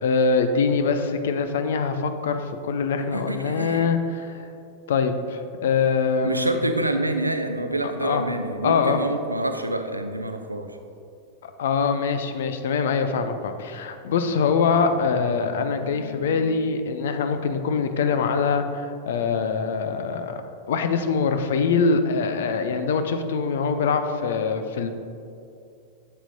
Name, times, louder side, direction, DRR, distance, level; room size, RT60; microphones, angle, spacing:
voice 1, 0.0-4.4 4.9-6.6 7.8-8.2 8.6-9.0 11.4-20.3 20.7-24.9, left 5 dB, 60° left, 8 dB, 0.6 m, -23 dB
voice 2, 2.9-3.9 6.2-10.7, right 1 dB, 85° right, 7 dB, 0.6 m, -27 dB
sound 1, 13.6-19.1, left 3 dB, 85° left, 1.3 m, -44 dB
9.9 x 7.5 x 2.7 m, 2.6 s
figure-of-eight pair, 90°, 0 cm